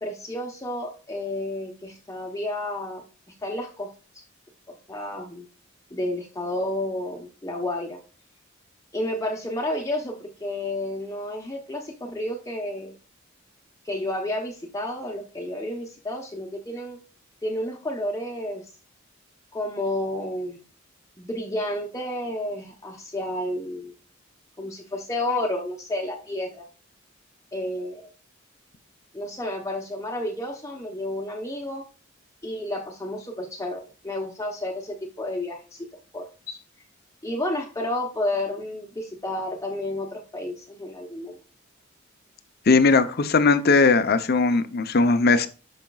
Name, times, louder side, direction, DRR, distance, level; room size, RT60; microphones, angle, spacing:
voice 1, 0.0-3.0 3.4-3.9 4.9-5.5 5.9-8.0 8.9-12.9 13.8-17.0 17.4-18.6 19.5-20.6 21.2-23.9 24.6-26.7 27.5-28.1 29.1-31.8 32.4-35.9 36.1-36.6 37.2-41.4, left 1 dB, 15° left, 0.9 m, -31 dB
voice 2, 42.7-45.5, left 4 dB, 50° left, 0.7 m, -19 dB
11.5 x 5.1 x 2.3 m
head